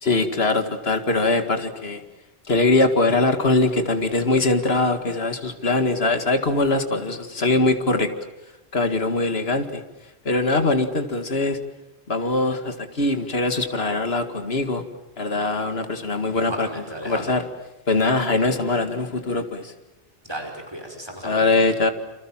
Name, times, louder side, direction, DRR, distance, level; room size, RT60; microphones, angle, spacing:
voice 1, 0.0-2.0 2.5-8.1 8.7-9.8 10.3-11.6 12.1-14.8 15.2-16.7 17.0-17.4 17.9-19.7 21.2-21.9, left 2 dB, 65° left, 7 dB, 2.3 m, -22 dB
voice 2, 16.3-17.3 20.3-21.4, right 1 dB, 20° right, 4 dB, 5.1 m, -34 dB
28.5 x 26.5 x 7.4 m, 0.99 s
omnidirectional pair, 1.1 m